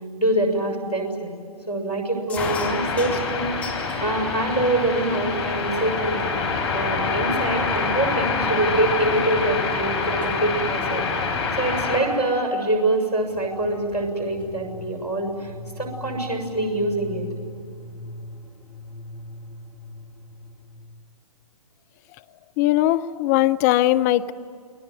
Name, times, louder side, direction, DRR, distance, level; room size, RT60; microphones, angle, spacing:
voice 1, 0.2-1.3 1.7-6.3 6.7-11.0 11.6-17.3, right 1 dB, 90° left, 3 dB, 6.8 m, -25 dB
sound 1, 2.3-4.0 4.5-5.1 5.8-5.9 6.1-6.5 7.2-7.3 7.5-9.7 10.0-10.3 11.7-11.9 13.0-13.1 13.3-13.4 13.7-14.6, left 5 dB, 5° left, 2.5 m, -38 dB
sound 2, 2.4-12.0, left 4 dB, 45° left, 5.0 m, -26 dB
sound 3, 13.3-21.1, left 1 dB, 65° left, 2.7 m, -40 dB
voice 2, 22.6-24.3, left 15 dB, 25° left, 11 dB, 0.7 m, -19 dB
29.0 x 21.5 x 9.4 m, 2.3 s
figure-of-eight pair, 125°, 19 cm